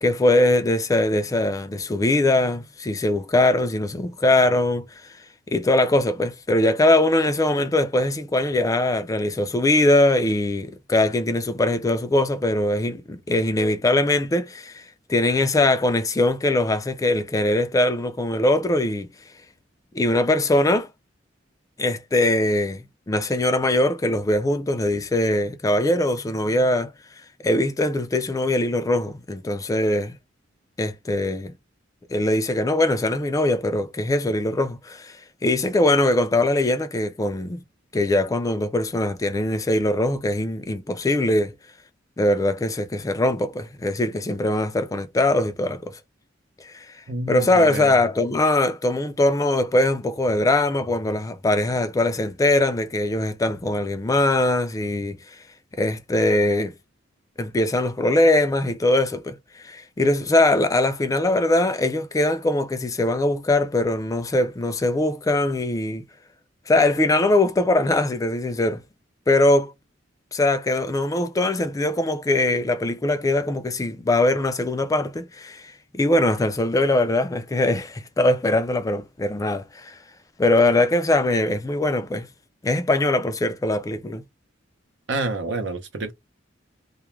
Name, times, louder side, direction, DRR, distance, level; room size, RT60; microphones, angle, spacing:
voice 1, 0.0-4.9 5.5-14.8 15.1-19.1 19.9-20.9 21.8-26.9 27.4-30.1 30.8-31.5 32.1-35.2 35.4-37.6 37.9-41.5 42.2-45.9 46.6-46.8 47.3-55.2 55.8-56.7 57.4-59.4 59.6-66.0 66.7-68.8 69.3-69.7 70.3-79.9 80.4-82.3 82.6-84.2, left 1 dB, 20° left, 0.3 m, -21 dB
voice 2, 47.1-48.0 85.1-86.1, right 2 dB, 70° right, 0.7 m, -28 dB
2.3 x 2.1 x 3.0 m
head